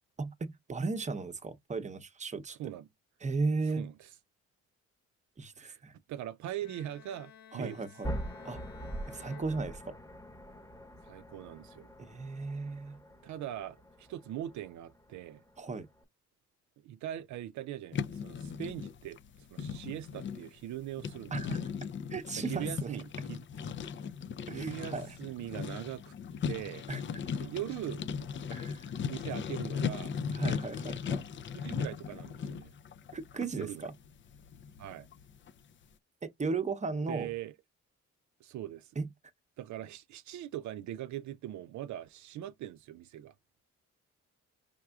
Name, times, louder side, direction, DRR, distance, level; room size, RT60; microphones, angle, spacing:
voice 1, 0.2-2.6 3.2-3.9 5.4-5.9 7.5-8.1 8.4-8.6 9.1-9.9 12.0-13.0 15.6-15.9 21.3-21.6 22.1-23.0 24.5-25.2 26.9-27.0 28.5-28.9 30.3-31.3 33.1-33.9 36.2-37.3 39.0-39.1, right 4 dB, 25° right, 0.8 m, -35 dB
voice 2, 2.5-2.9 3.8-4.1 5.6-5.8 6.1-7.8 11.0-11.9 13.2-15.4 16.8-21.7 22.4-23.4 24.5-26.1 26.5-26.9 27.4-28.0 29.1-30.1 31.5-32.7 33.6-33.9 34.8-35.1 37.1-37.5 38.4-38.9 39.6-43.3, right 12 dB, 70° right, 0.5 m, -41 dB
Bowed string instrument, 6.6-10.4, left 8 dB, 60° left, 0.9 m, -56 dB
sound 1, 8.0-16.0, right 1 dB, 10° left, 1.0 m, -44 dB
sound 2, 17.9-35.6, left 6 dB, 40° left, 0.4 m, -38 dB
4.7 x 3.5 x 2.3 m
cardioid pair, 90°, 30 cm